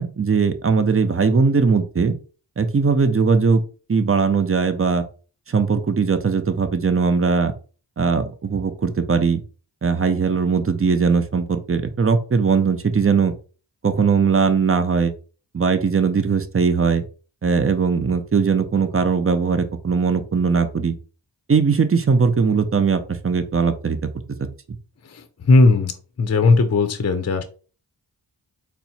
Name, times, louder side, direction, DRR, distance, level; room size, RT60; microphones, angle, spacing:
voice 1, 0.0-2.1 2.6-3.6 3.9-5.0 5.5-7.5 8.0-9.4 9.8-13.3 13.8-15.1 15.5-17.0 17.4-20.9 21.5-24.1 24.4-24.5, right 5 dB, 30° right, 9 dB, 0.6 m, -19 dB
voice 2, 25.1-25.9 26.2-27.4, left 3 dB, 35° left, 8 dB, 0.6 m, -17 dB
4.2 x 2.1 x 4.2 m, 0.37 s
cardioid pair, 45°, 44 cm